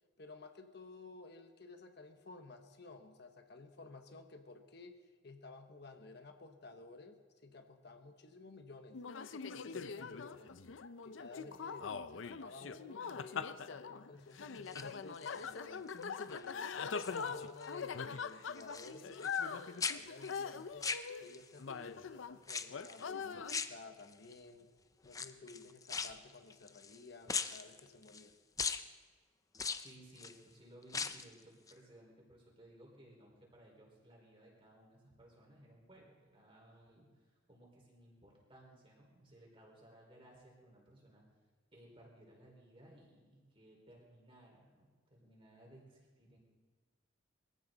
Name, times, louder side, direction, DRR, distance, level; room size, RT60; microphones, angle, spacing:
voice 1, 0.2-5.0 5.2-9.0 9.5-10.5 11.0-15.9 16.3-19.2 19.5-20.9 21.2-24.7 25.0-28.3, left 3 dB, 55° left, 6 dB, 1.1 m, -54 dB
sound 1, 8.9-22.4 22.7-23.6, left 6 dB, 75° left, 0.6 m, -42 dB
sound 2, 14.6-15.5 16.0-16.4 16.7-17.7 18.0-19.5 19.8-21.6 22.4-23.0 23.5-24.3 25.1-27.0 27.3-28.3 28.6-28.9 29.5-30.4 30.8-31.3 31.7-31.8, left 5 dB, 15° left, 0.5 m, -40 dB
voice 2, 29.8-41.2 41.7-46.4, right 1 dB, 25° right, -1 dB, 4.5 m, -60 dB
23.0 x 15.0 x 4.0 m, 1.4 s
head